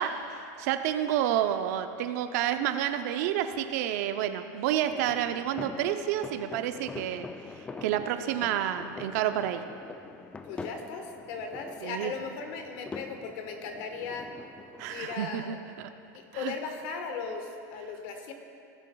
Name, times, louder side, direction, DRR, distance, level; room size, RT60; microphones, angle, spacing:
voice 1, 0.0-7.3 7.8-9.6 11.8-12.1 14.8-15.9 16.3-16.5, right 10 dB, 65° right, 8 dB, 0.6 m, -29 dB
sound 1, 4.9-15.1, left 3 dB, 10° left, 0.3 m, -44 dB
voice 2, 10.4-14.3 14.9-15.6 16.1-18.3, left 5 dB, 55° left, 5 dB, 1.3 m, -37 dB
17.0 x 7.3 x 2.3 m, 2.7 s
supercardioid pair, 125°, 9 cm